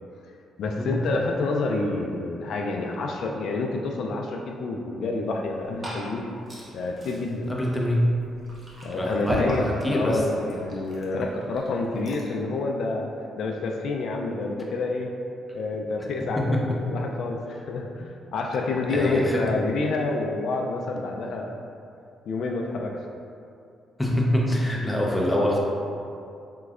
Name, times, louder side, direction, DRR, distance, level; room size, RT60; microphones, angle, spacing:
voice 1, 0.6-6.2 6.7-7.5 8.8-13.1 13.4-15.1 15.5-21.6 22.3-23.0, left 3 dB, 70° left, 1 dB, 0.3 m, -28 dB
Glass / Fill (with liquid), 5.3-12.4, equal, 35° right, 0.8 m, -37 dB
voice 2, 7.5-8.0 8.9-10.2 16.4-16.8 18.9-19.4 24.0-25.6, left 1 dB, 10° left, -2 dB, 0.6 m, -25 dB
3.7 x 3.1 x 2.4 m, 2.5 s
cardioid pair, 90°, 0 cm